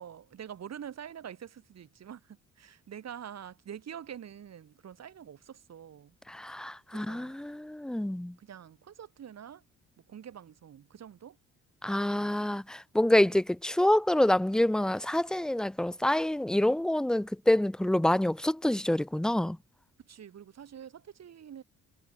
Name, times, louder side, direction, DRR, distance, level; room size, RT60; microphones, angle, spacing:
voice 1, 0.0-6.2 6.9-7.4 8.4-9.6 10.1-11.4 12.1-12.4 20.0-21.6, right 9 dB, 60° right, 6.3 m, -46 dB
voice 2, 6.3-8.3 11.8-19.6, left 1 dB, ahead, 0.4 m, -27 dB
cardioid pair, 90°, 30 cm